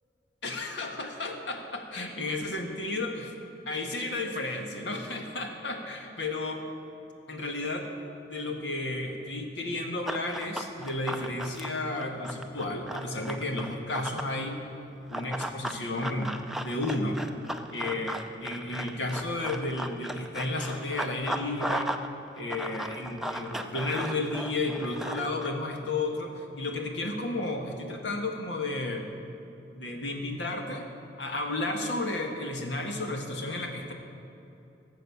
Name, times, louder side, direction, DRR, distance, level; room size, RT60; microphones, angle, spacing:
voice 1, 0.4-3.3 3.6-6.6 7.3-7.9 8.3-14.6 15.1-17.2 17.7-21.9 22.4-29.1 29.7-30.9 31.2-33.9, left 2 dB, 90° left, 2 dB, 1.7 m, -32 dB
Run, 10.1-14.4 15.1-22.1 22.3-25.5, right 1 dB, ahead, 0.5 m, -36 dB
17.0 x 7.5 x 7.1 m, 2.8 s
head